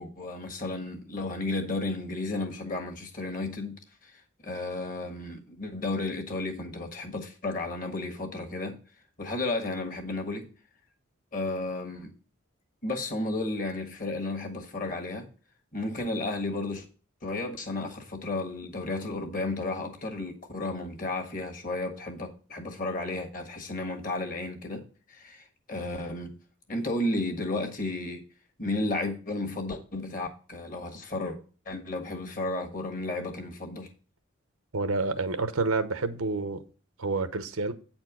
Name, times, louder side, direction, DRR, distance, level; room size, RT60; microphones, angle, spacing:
voice 1, 0.0-8.8 9.2-10.5 11.3-12.1 12.8-15.3 15.7-16.8 17.2-24.8 25.1-26.4 26.7-28.2 28.6-31.4 31.6-33.9, left 2 dB, 40° left, 1.5 m, -33 dB
voice 2, 34.7-36.6 37.0-37.7, right 3 dB, 85° right, 0.9 m, -28 dB
9.0 x 4.4 x 6.1 m
head